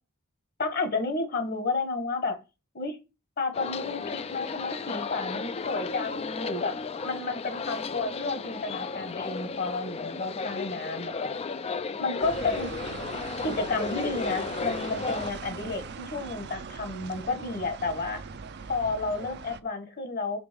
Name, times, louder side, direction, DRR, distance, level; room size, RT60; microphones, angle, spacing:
voice 1, 0.6-2.4 2.7-3.0 3.4-6.7 7.0-11.4 12.0-12.7 13.4-18.2 18.7-20.4, left 3 dB, 50° left, 8 dB, 1.4 m, -31 dB
Col'cachio Ambience, 3.5-15.3, left 4 dB, 30° left, 0.4 m, -34 dB
sound 1, 12.2-19.6, right 5 dB, 55° right, 0.5 m, -40 dB
5.2 x 3.9 x 5.2 m, 0.28 s
head